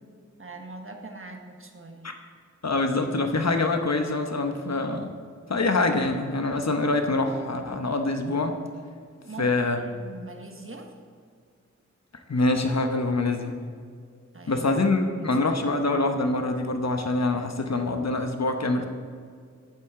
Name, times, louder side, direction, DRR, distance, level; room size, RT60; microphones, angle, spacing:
voice 1, 0.4-2.1 9.2-9.5 9.8-10.9 14.3-15.6, right 3 dB, 45° right, 2 dB, 1.4 m, -42 dB
voice 2, 2.6-5.1 5.5-8.6 9.4-9.8 12.3-13.5 14.5-18.9, left 2 dB, 60° left, 5 dB, 1.0 m, -25 dB
10.5 x 9.3 x 3.8 m, 2.1 s
wide cardioid pair, 55°, 30 cm